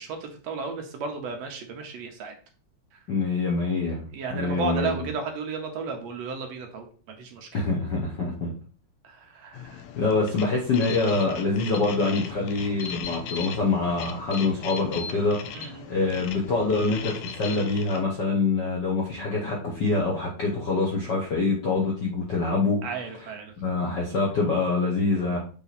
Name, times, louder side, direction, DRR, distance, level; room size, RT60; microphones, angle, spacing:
voice 1, 0.0-2.3 4.1-7.6 9.0-9.8 15.5-15.9 22.8-23.5, right 5 dB, 70° right, 3 dB, 2.0 m, -34 dB
voice 2, 3.1-5.1 7.5-8.5 10.0-22.9 23.2-23.3 23.6-25.4, left 3 dB, 60° left, -2 dB, 1.1 m, -25 dB
sound 1, 9.5-18.0, left 7 dB, 80° left, 2.1 m, -38 dB
7.0 x 3.4 x 4.1 m, 0.40 s
omnidirectional pair, 3.4 m